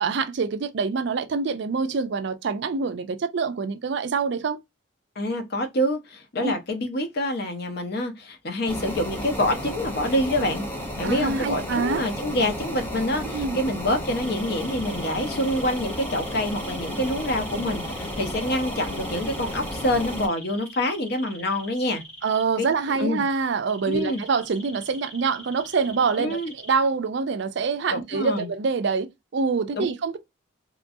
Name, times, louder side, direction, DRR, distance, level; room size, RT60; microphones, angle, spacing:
voice 1, 0.0-4.6 6.4-6.5 11.0-12.1 13.3-13.6 22.2-29.1 29.3-30.2, right 5 dB, 55° right, 0.4 m, -25 dB
voice 2, 5.2-10.6 11.0-22.0 22.6-22.7 23.0-23.2 23.9-24.2 26.2-26.5 27.9-28.5 29.7-29.9, left 1 dB, 50° left, 0.7 m, -26 dB
sound 1, 8.7-20.3, equal, 10° left, 0.6 m, -33 dB
sound 2, 14.2-26.7, equal, 35° left, 1.3 m, -44 dB
3.0 x 2.4 x 2.5 m
head